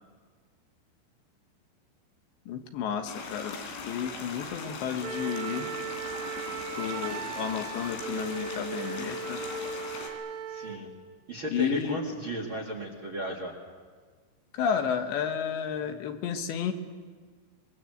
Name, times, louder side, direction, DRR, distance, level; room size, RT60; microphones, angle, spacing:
voice 1, 2.5-3.6 3.9-5.7 6.8-9.4 11.5-12.0 14.5-16.7, left 8 dB, 75° left, 6 dB, 3.5 m, -31 dB
sound 1, 3.1-10.1, left 4 dB, 90° left, 5.8 m, -40 dB
Wind instrument woodwind instrument, 5.0-10.8, right 6 dB, 70° right, 3.4 m, -37 dB
voice 2, 10.5-10.9 11.3-13.6, right 1 dB, 45° right, 2 dB, 1.8 m, -35 dB
25.0 x 22.5 x 7.9 m, 1.5 s
omnidirectional pair, 5.4 m